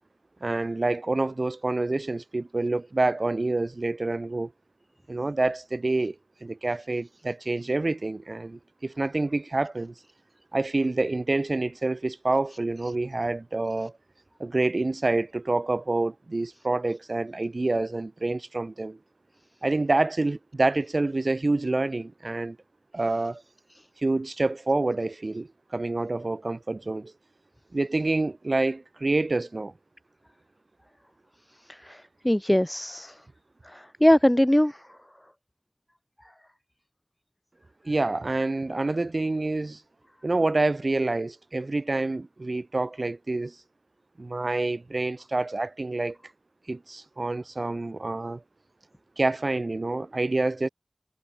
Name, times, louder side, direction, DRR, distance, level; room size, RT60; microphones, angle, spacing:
voice 1, 0.4-4.5 5.1-6.1 6.4-9.9 10.5-13.9 14.4-19.0 19.6-22.6 22.9-23.4 24.0-27.1 27.7-29.7 37.8-39.8 40.2-43.6 44.2-46.2 46.7-48.4 49.2-50.7, right 2 dB, 90° right, 3.2 m, -27 dB
voice 2, 31.7-33.2 33.7-34.8, equal, 15° left, 4.0 m, -22 dB
wide cardioid pair, 45°, 0 cm